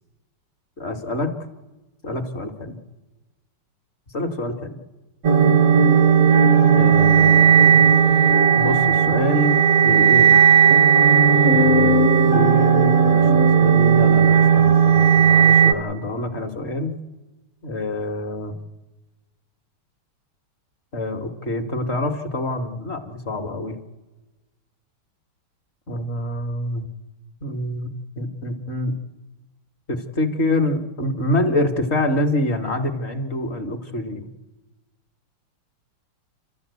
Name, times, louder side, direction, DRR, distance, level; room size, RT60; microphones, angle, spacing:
voice 1, 0.8-1.4 2.0-2.8 4.1-4.7 6.7-7.8 8.5-10.4 11.5-17.0 17.6-18.6 20.9-23.8 25.9-26.9 27.4-28.9 29.9-34.3, left 1 dB, 35° left, 7 dB, 1.3 m, -26 dB
sound 1, 5.2-15.7, right 7 dB, 55° right, 1.0 m, -15 dB
29.0 x 13.0 x 8.1 m, 1.2 s
omnidirectional pair, 2.4 m